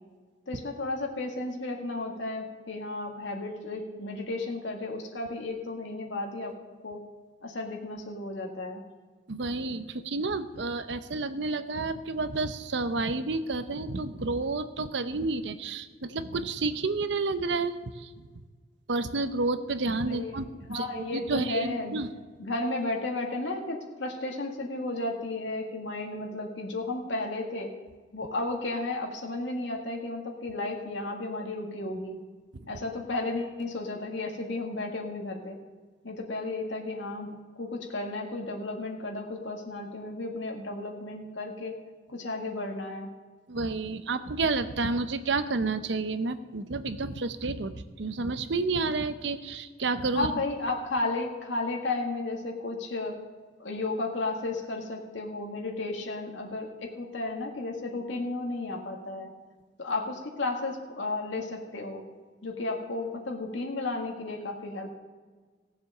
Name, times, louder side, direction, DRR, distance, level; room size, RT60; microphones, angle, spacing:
voice 1, 0.5-6.5 6.8-7.0 7.4-8.8 20.1-20.4 20.7-22.0 22.4-27.7 28.1-32.2 32.7-35.6 36.0-41.7 42.1-43.1 50.1-53.2 53.6-59.3 59.8-62.0 62.4-65.0, left 2 dB, 85° left, 1 dB, 1.9 m, -33 dB
voice 2, 9.3-18.1 18.9-22.1 32.5-32.7 43.5-50.3, right 3 dB, 75° right, 11 dB, 0.7 m, -30 dB
16.5 x 7.4 x 6.7 m, 1.5 s
head